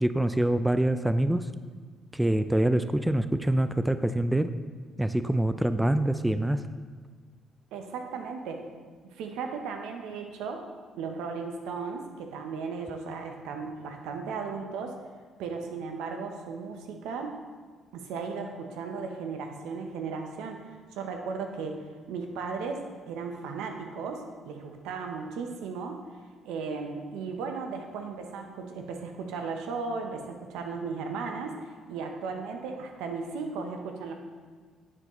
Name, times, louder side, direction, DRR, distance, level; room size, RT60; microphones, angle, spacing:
voice 1, 0.0-1.5 2.1-4.5 5.0-6.7, right 1 dB, 5° right, 10 dB, 0.3 m, -25 dB
voice 2, 7.7-8.7 9.1-10.7 10.9-15.0 15.4-17.4 17.9-26.0 26.4-31.6 31.9-34.1, right 5 dB, 85° right, 4 dB, 0.7 m, -36 dB
9.6 x 4.6 x 3.0 m, 1.5 s
supercardioid pair, 65°, 0 cm